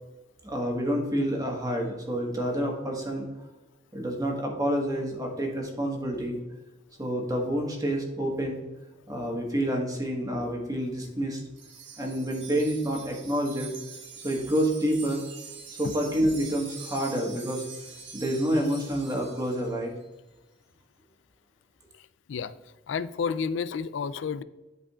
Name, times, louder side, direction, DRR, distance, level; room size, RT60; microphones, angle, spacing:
voice 1, 0.4-3.3 3.9-6.4 7.0-8.6 9.1-11.4 12.0-13.7 14.2-15.2 15.8-17.6 18.1-19.9, equal, 20° right, 0 dB, 1.4 m, -28 dB
Wind chime, 11.6-19.8, right 5 dB, 70° right, 1.4 m, -44 dB
voice 2, 21.9-22.5 22.9-24.4, left 6 dB, 85° left, 15 dB, 0.4 m, -31 dB
11.5 x 5.0 x 2.4 m, 1.1 s
head